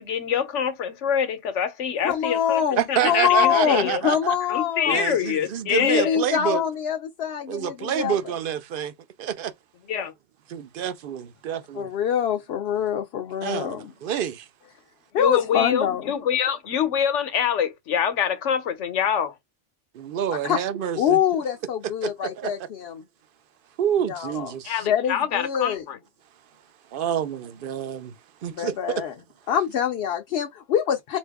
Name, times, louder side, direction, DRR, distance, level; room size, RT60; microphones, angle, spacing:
voice 1, 0.0-2.6 2.9-4.0 4.5-6.2 9.9-10.1 15.2-19.3 24.6-26.0, left 8 dB, 80° left, 1.1 m, -25 dB
voice 2, 2.0-5.0 5.8-8.3 11.7-13.9 15.1-16.1 20.3-20.6 20.9-23.0 24.1-24.5 24.8-25.8 28.5-29.1 29.5-31.2, left 9 dB, 65° left, 0.8 m, -25 dB
voice 3, 2.8-4.4 4.9-6.6 7.5-8.9 9.2-9.5 10.5-11.9 13.4-14.5 19.9-21.2 22.0-22.1 22.4-22.5 23.8-24.8 26.9-28.1 28.4-28.8, right 9 dB, 60° right, 0.6 m, -28 dB
4.2 x 2.6 x 3.4 m
omnidirectional pair, 1.2 m